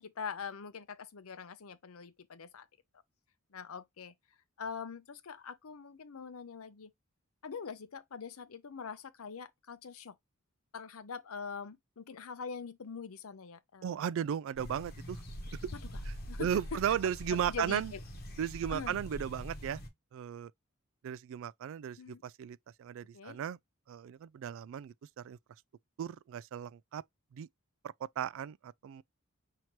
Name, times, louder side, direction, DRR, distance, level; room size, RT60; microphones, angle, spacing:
voice 1, 0.0-2.7 3.5-4.1 4.6-6.9 7.4-10.1 10.7-14.0 16.3-16.5 16.9-17.0 17.5-18.0 18.7-19.0 22.0-22.2 23.1-23.4, left 6 dB, 80° left, 0.6 m, -43 dB
voice 2, 13.8-15.2 15.6-15.7 16.1-16.2 16.4-17.9 18.4-19.8 20.1-20.5 21.0-23.6 23.9-25.4 26.0-27.0 27.3-27.5 27.8-29.0, right 9 dB, 65° right, 0.3 m, -36 dB
sound 1, 14.5-19.9, equal, 50° left, 1.1 m, -44 dB
5.8 x 2.8 x 3.1 m
head